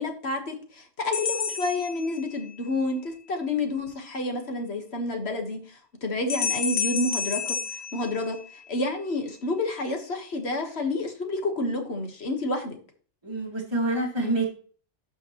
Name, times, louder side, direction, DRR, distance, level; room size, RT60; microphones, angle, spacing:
voice 1, 0.0-7.6 7.9-12.8, left 2 dB, 60° left, 4 dB, 1.7 m, -29 dB
sound 1, 1.1-2.7 6.3-8.8, left 6 dB, 85° left, 1.1 m, -31 dB
voice 2, 13.2-14.5, right 2 dB, 20° right, -2 dB, 2.2 m, -27 dB
12.0 x 5.6 x 3.0 m, 0.43 s
omnidirectional pair, 1.2 m